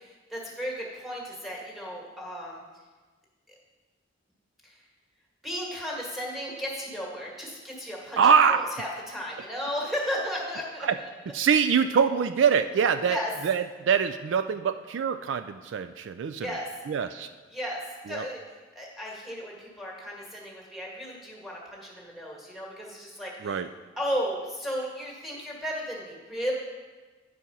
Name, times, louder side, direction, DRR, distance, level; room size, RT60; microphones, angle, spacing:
voice 1, 0.0-2.6 4.6-4.8 5.4-8.2 8.5-10.9 13.1-13.3 16.4-16.7 17.5-17.8 18.1-18.4 18.8-23.6 24.0-26.5, equal, ahead, -3 dB, 1.8 m, -34 dB
voice 2, 8.2-8.6 10.8-11.0 11.3-13.2 13.4-16.5 16.9-17.3 18.1-18.3 23.4-23.7, right 6 dB, 70° right, 10 dB, 0.3 m, -24 dB
9.9 x 4.7 x 5.4 m, 1.3 s
head